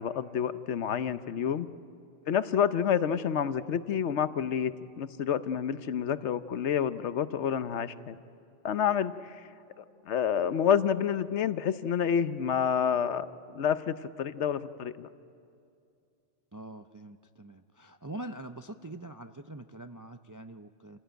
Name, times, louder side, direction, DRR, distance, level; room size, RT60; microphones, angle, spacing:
voice 1, 0.0-1.7 2.3-8.2 8.6-9.4 9.8-15.1, left 8 dB, 70° left, 13 dB, 1.0 m, -29 dB
voice 2, 16.5-21.0, right 2 dB, 30° right, 8 dB, 0.3 m, -44 dB
27.5 x 16.5 x 9.0 m, 2.5 s
omnidirectional pair, 1.2 m